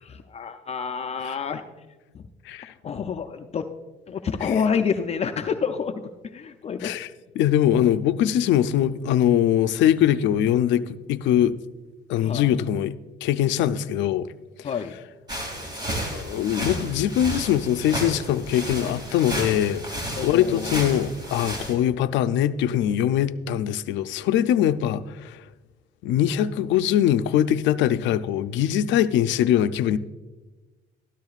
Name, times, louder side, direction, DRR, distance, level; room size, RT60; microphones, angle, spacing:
voice 1, 0.0-1.6 2.1-2.2 2.8-3.7 4.1-6.0 6.3-7.0 12.2-12.5 14.6-14.9 20.2-20.8, left 6 dB, 35° left, 0.5 m, -28 dB
voice 2, 7.4-11.5 12.1-12.9 13.2-14.3 14.6-14.7 16.1-19.8 20.2-25.4 26.0-30.0, left 10 dB, 85° left, 0.5 m, -22 dB
sound 1, 15.3-21.7, equal, 20° right, 2.6 m, -32 dB
13.0 x 12.0 x 2.4 m
cardioid pair, 130°, 19 cm